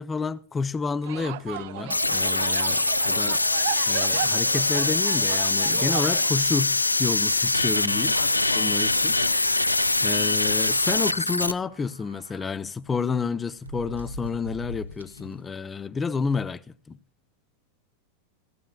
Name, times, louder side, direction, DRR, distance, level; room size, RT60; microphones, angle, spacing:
voice 1, 0.0-3.4 3.9-8.2 8.6-9.2 10.0-17.0, left 5 dB, 15° left, 0.6 m, -30 dB
sound 1, 1.0-6.3, right 15 dB, 50° right, 0.4 m, -35 dB
sound 2, 1.9-11.5, left 2 dB, 85° left, 0.5 m, -23 dB
voice 2, 2.7-3.2 8.1-9.6 15.2-15.5, left 7 dB, 65° left, 0.9 m, -42 dB
sound 3, 9.0-9.4 9.7-9.8 10.1-10.3 11.5-12.5 13.1-15.3, equal, 80° right, 0.8 m, -42 dB
17.0 x 15.0 x 2.3 m
figure-of-eight pair, 90°, 0 cm